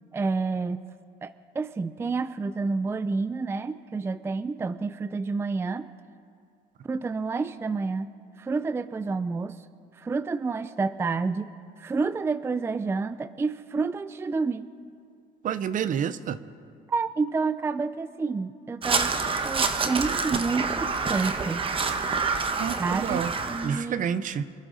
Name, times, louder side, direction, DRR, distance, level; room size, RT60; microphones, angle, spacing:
voice 1, 0.1-0.8 1.2-5.9 6.8-8.1 8.4-9.6 9.9-11.5 11.8-14.7 16.9-19.2 19.4-21.6 22.8-24.0, right 4 dB, 15° right, 14 dB, 0.3 m, -29 dB
voice 2, 15.4-16.4 22.6-23.3 23.6-24.4, right 8 dB, 50° right, 14 dB, 0.6 m, -29 dB
Crow, 18.8-23.8, right 4 dB, 30° right, 1.0 m, -27 dB
26.5 x 11.5 x 4.0 m, 2.4 s
cardioid pair, 110°, 17 cm